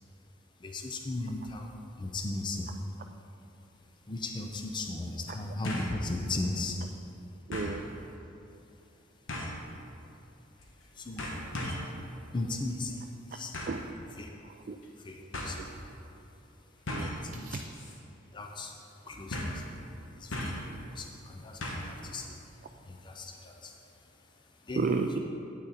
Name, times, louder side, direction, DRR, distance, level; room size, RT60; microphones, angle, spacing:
voice 1, 0.6-2.7 4.1-6.8 10.9-11.6 12.3-13.5 14.2-14.3 15.0-15.8 17.1-17.6 18.3-18.7 19.1-19.7 20.1-22.4 22.8-24.1 24.6-24.9, left 2 dB, 25° left, 2 dB, 0.5 m, -37 dB
sound 1, 3.7-3.8 5.6-6.0 6.4-6.5 7.5-7.8 9.3-9.6 10.6-10.8 11.2-11.9 13.5-13.8 14.8-14.9 15.3-15.5 16.9-17.2 17.7-18.0 18.2-18.3 19.3-19.6 20.3-20.7 21.6-22.0 22.3-22.4, left 1 dB, 80° left, 1.2 m, -36 dB
voice 2, 7.5-7.9 13.7-13.9 14.4-14.8 15.6-15.7 16.9-17.1 17.4-17.7 24.8-25.2, right 4 dB, 45° right, 4 dB, 0.3 m, -33 dB
8.8 x 6.2 x 4.2 m, 2.8 s
head